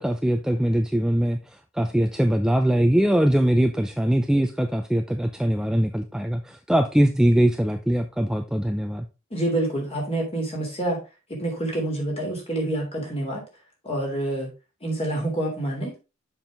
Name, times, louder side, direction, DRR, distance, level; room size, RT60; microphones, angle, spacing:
voice 1, 0.0-1.4 1.7-9.1, right 1 dB, 5° right, 6 dB, 0.4 m, -22 dB
voice 2, 9.3-11.0 11.3-13.4 13.8-14.5 14.8-16.0, right 1 dB, 30° left, 0 dB, 3.1 m, -27 dB
7.0 x 5.5 x 3.7 m, 0.28 s
head